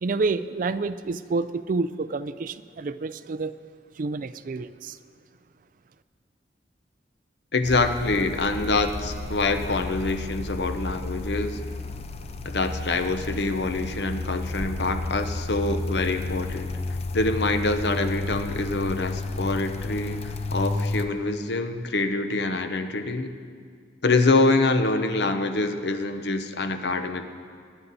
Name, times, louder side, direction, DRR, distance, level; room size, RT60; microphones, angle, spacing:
voice 1, 0.0-3.5 4.0-5.0, right 3 dB, 50° right, 12 dB, 0.4 m, -28 dB
voice 2, 7.5-11.6 12.4-16.8 17.1-23.4 24.0-27.2, left 3 dB, 70° left, 8 dB, 0.8 m, -25 dB
sound 1, 7.6-21.1, left 2 dB, 35° left, 0.5 m, -32 dB
22.5 x 9.9 x 4.1 m, 2.1 s
head